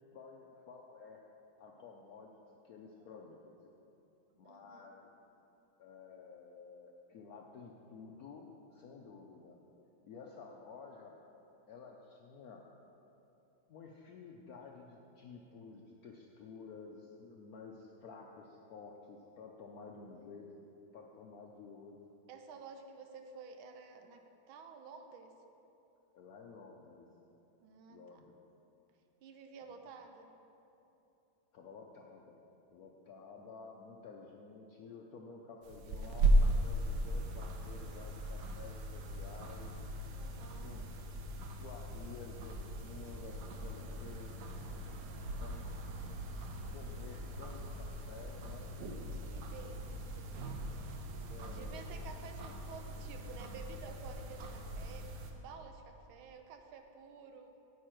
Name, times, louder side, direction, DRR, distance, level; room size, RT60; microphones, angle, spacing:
voice 1, 0.1-1.2 1.6-2.3 2.6-3.7 4.4-5.1 5.8-9.6 10.0-11.2 11.7-12.7 13.7-20.7 20.9-21.9 26.1-27.0 27.9-28.3 29.7-29.8 31.5-32.4 32.7-39.7 40.6-41.1 41.4-44.3 45.3-45.9 46.7-48.9 51.3-52.1, left 4 dB, 75° left, 1 dB, 0.8 m, -52 dB
voice 2, 4.4-4.9 22.3-25.3 27.6-28.2 29.2-30.3 40.1-40.9 49.1-57.5, right 5 dB, 85° right, 6 dB, 1.5 m, -52 dB
sound 1, 35.6-55.3, right 1 dB, 65° right, 1.2 m, -37 dB
9.5 x 8.2 x 4.4 m, 2.9 s
omnidirectional pair, 2.2 m